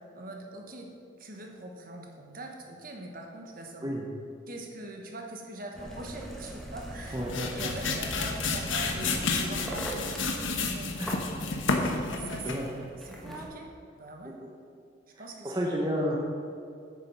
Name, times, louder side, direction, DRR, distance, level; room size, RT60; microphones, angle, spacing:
voice 1, 0.0-3.9 4.5-7.2 7.5-10.0 10.6-11.3 11.8-12.5 12.8-13.7 14.0-14.4 15.2-15.5, right 2 dB, 45° right, 1 dB, 1.1 m, -42 dB
sound 1, 5.7-13.5, right 1 dB, ahead, 1.1 m, -41 dB
sound 2, 6.9-12.7, left 3 dB, 80° left, 1.0 m, -31 dB
voice 2, 7.1-7.5 11.0-11.1 12.4-12.7 14.4-14.5 15.4-16.2, equal, 20° right, -2 dB, 0.8 m, -30 dB
9.1 x 6.8 x 5.5 m, 2.5 s
head